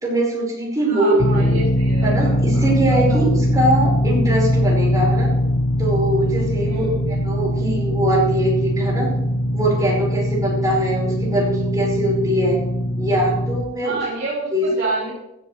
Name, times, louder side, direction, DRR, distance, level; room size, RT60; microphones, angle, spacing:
voice 1, 0.0-1.5 2.0-5.3 5.8-9.1 9.5-12.6 13.0-14.0 14.5-14.7, right 1 dB, 20° right, -4 dB, 4.9 m, -22 dB
voice 2, 0.8-3.2 6.6-7.0 13.8-15.1, right 3 dB, 45° right, -10 dB, 4.7 m, -29 dB
sound 1, 1.2-13.6, equal, 65° left, 0.8 m, -21 dB
15.5 x 13.5 x 3.2 m, 0.86 s
head